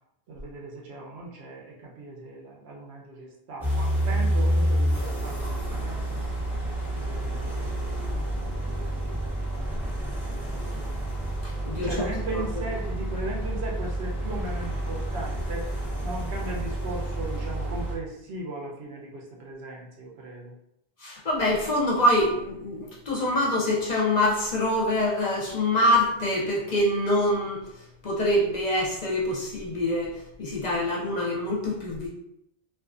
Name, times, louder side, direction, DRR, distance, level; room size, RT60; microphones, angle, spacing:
voice 1, 0.3-6.2 7.0-11.1 11.8-15.7 16.0-20.5, right 2 dB, 85° right, -2 dB, 0.9 m, -38 dB
sound 1, 3.6-18.0, right 1 dB, 5° right, 0.5 m, -29 dB
voice 2, 11.4-11.9 21.0-27.6 28.0-30.1 30.4-32.1, left 1 dB, 50° left, -4 dB, 0.6 m, -25 dB
2.5 x 2.3 x 2.4 m, 0.79 s
omnidirectional pair, 1.1 m